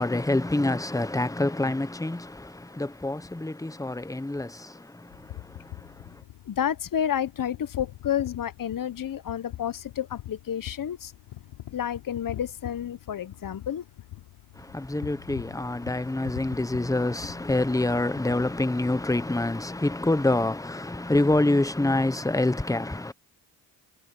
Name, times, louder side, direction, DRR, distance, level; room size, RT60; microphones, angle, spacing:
voice 1, 0.0-6.2 14.6-23.1, left 2 dB, 5° left, 1.1 m, -27 dB
sound 1, 5.1-19.6, left 14 dB, 85° left, 4.8 m, -44 dB
voice 2, 6.5-11.1 11.7-13.8, left 9 dB, 45° left, 1.1 m, -30 dB
supercardioid pair, 60°, 46 cm